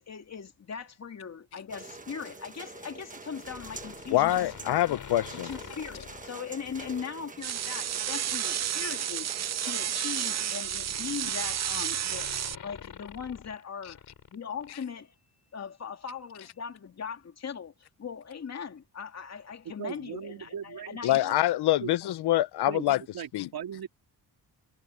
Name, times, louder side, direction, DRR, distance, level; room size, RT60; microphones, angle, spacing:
voice 1, 0.0-4.8 5.3-14.0 14.3-15.1 15.5-21.3, left 6 dB, 40° left, 2.8 m, -40 dB
sound 1, 1.7-10.6, right 3 dB, 20° right, 1.2 m, -46 dB
sound 2, 3.4-7.1 7.6-7.8 9.0-14.4 14.6-14.7, left 8 dB, 60° left, 4.4 m, -47 dB
voice 2, 4.1-5.5 21.0-23.0 23.3-23.5, left 14 dB, 90° left, 0.7 m, -25 dB
sound 3, 7.4-12.5, right 10 dB, 45° right, 0.5 m, -31 dB
voice 3, 19.8-21.4 21.8-22.0 22.7-23.9, right 8 dB, 65° right, 2.8 m, -39 dB
wide cardioid pair, 155°, 38 cm